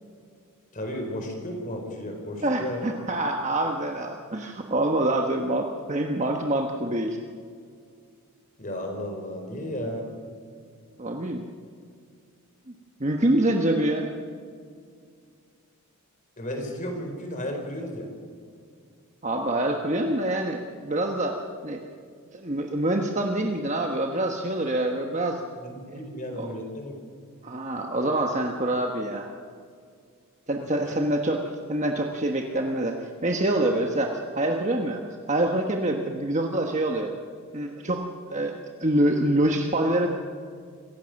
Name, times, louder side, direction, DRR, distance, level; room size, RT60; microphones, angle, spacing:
voice 1, 0.7-2.8 8.6-10.1 16.4-18.1 25.5-27.0 30.8-30.9, left 1 dB, 35° left, 3 dB, 4.3 m, -34 dB
voice 2, 2.4-7.2 11.0-11.4 13.0-14.1 19.2-21.8 22.3-25.4 25.9-26.0 26.3-26.5 27.4-29.3 30.5-31.4 31.7-32.9 33.2-35.0 35.3-37.1 37.5-38.5 38.8-40.1, right 1 dB, 35° right, 2 dB, 1.2 m, -26 dB
26.0 x 15.5 x 6.5 m, 2.2 s
head